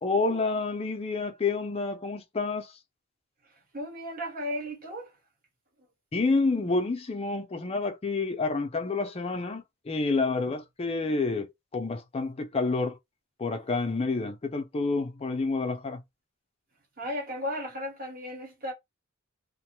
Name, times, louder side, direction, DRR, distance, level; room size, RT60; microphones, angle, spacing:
voice 1, 0.0-2.8 6.1-13.0 13.4-16.0, left 3 dB, 30° left, 0.4 m, -29 dB
voice 2, 3.7-5.1 17.0-18.7, equal, 45° right, 1.0 m, -35 dB
2.5 x 2.1 x 2.9 m
head